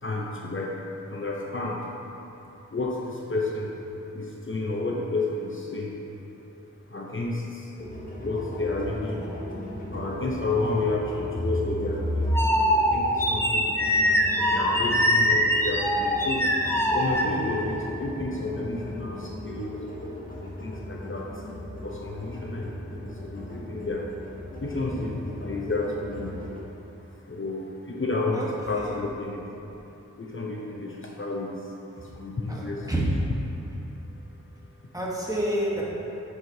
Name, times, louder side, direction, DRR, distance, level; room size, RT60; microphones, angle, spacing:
voice 1, 0.0-1.9 2.7-3.7 4.1-5.9 6.9-7.7 8.2-9.3 9.9-12.3 12.8-13.8 14.5-16.5 16.9-19.8 20.4-21.4 21.8-24.1 24.6-26.4 27.0-29.8 30.2-32.9 33.6-33.9 34.2-34.3 34.8-34.9, left 2 dB, 45° left, -2 dB, 0.7 m, -31 dB
sound 1, 7.8-26.6, equal, 30° left, 1.1 m, -38 dB
sound 2, 11.3-17.7, equal, 10° left, 0.6 m, -23 dB
voice 2, 28.3-29.0 32.5-33.1 34.9-35.8, right 1 dB, 10° right, -5 dB, 1.2 m, -29 dB
10.0 x 4.8 x 2.8 m, 3.0 s
wide cardioid pair, 60°, 29 cm